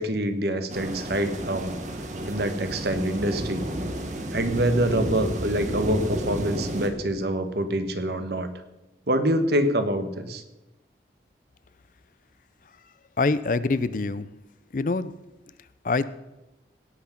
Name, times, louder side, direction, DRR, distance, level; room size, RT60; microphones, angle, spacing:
voice 1, 0.0-1.8 2.3-3.7 4.3-8.5 9.1-10.4, right 1 dB, 65° right, 9 dB, 1.2 m, -25 dB
sound 1, 0.7-6.9, right 1 dB, 40° right, 1.4 m, -31 dB
voice 2, 13.2-14.3 14.7-15.1 15.8-16.1, left 3 dB, 45° left, 16 dB, 0.5 m, -24 dB
17.0 x 5.9 x 5.8 m, 1.0 s
head